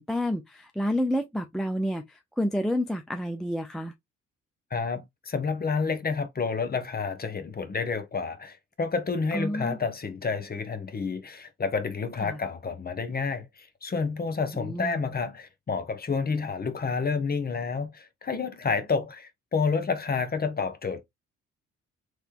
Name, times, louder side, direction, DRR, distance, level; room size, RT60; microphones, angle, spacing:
voice 1, 0.0-3.9 9.3-9.8 12.2-12.4 14.5-15.0, left 1 dB, ahead, 0.4 m, -29 dB
voice 2, 4.7-21.0, left 5 dB, 25° left, 0.8 m, -29 dB
3.3 x 3.1 x 2.5 m
figure-of-eight pair, 40°, 37 cm